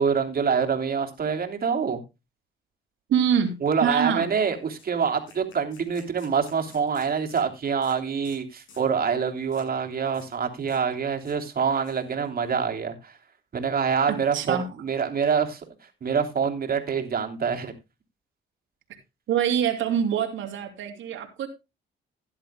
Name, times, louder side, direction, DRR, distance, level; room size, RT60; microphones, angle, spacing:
voice 1, 0.0-2.0 3.6-13.1 13.5-15.6 16.0-17.7, right 6 dB, 50° right, 3.1 m, -26 dB
voice 2, 3.1-3.5 3.8-4.3 14.1-14.7 19.3-21.5, right 8 dB, 80° right, 2.9 m, -25 dB
sound 1, 3.4-3.5 3.8-4.0 4.3-4.4 4.8-7.5 7.8-8.0 8.2-8.4 8.7-8.9 9.5-9.7 10.0-10.3 10.6-10.8 11.1-12.3, left 4 dB, 80° left, 7.3 m, -53 dB
16.5 x 11.0 x 2.2 m
cardioid pair, 90°, 20 cm